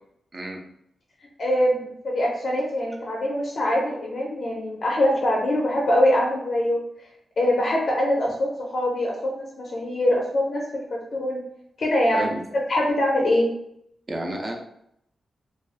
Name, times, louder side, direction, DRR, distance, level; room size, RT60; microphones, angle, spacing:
voice 1, 0.3-0.6 12.1-12.4 14.1-14.5, right 1 dB, 40° right, 1 dB, 0.5 m, -30 dB
voice 2, 1.4-6.8 7.4-11.4 11.8-13.5, left 1 dB, 60° left, -2 dB, 0.4 m, -23 dB
2.4 x 2.3 x 2.4 m, 0.74 s
cardioid pair, 90°, 0 cm